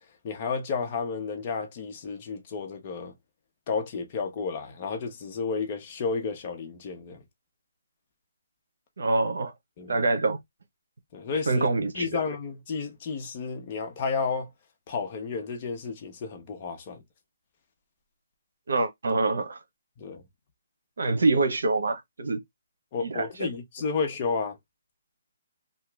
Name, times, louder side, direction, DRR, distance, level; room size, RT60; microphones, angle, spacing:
voice 1, 0.2-3.1 3.7-7.2 9.8-10.0 11.1-11.7 11.9-14.5 14.9-17.0 20.0-20.2 22.9-24.6, left 5 dB, 30° left, 0.8 m, -32 dB
voice 2, 9.0-9.5 9.9-10.4 11.5-12.1 18.7-19.6 21.0-22.4 23.0-23.2, right 3 dB, 80° right, 0.9 m, -25 dB
2.9 x 2.3 x 3.3 m
hypercardioid pair, 165°, 0 cm